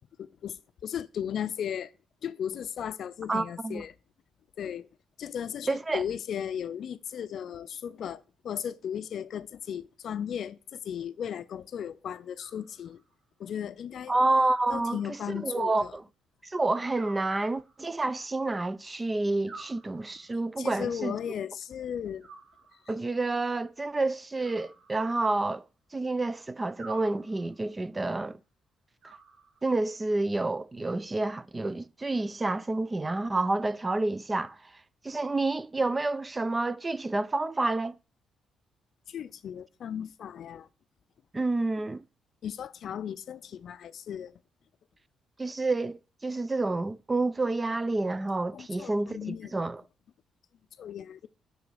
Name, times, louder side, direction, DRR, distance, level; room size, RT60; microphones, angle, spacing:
voice 1, 0.2-0.6 0.8-1.9 2.2-3.9 4.6-4.9 5.2-13.0 13.4-14.1 14.7-15.9 20.6-22.3 39.1-40.7 42.4-44.3 48.5-49.5 50.8-51.3, left 9 dB, 65° left, 0.4 m, -36 dB
voice 2, 3.3-3.8 5.7-6.0 14.1-16.0 16.4-21.2 22.9-25.6 25.9-28.4 29.6-34.7 35.0-37.9 41.3-42.0 45.4-49.8, right 2 dB, 20° right, 0.4 m, -29 dB
Animal, 12.3-13.2 14.5-15.5 17.0-18.0 19.5-20.5 22.2-23.1 24.4-25.5 26.8-27.7 29.0-29.9, right 4 dB, 80° right, 3.9 m, -51 dB
6.2 x 4.8 x 6.7 m
cardioid pair, 90°, 0 cm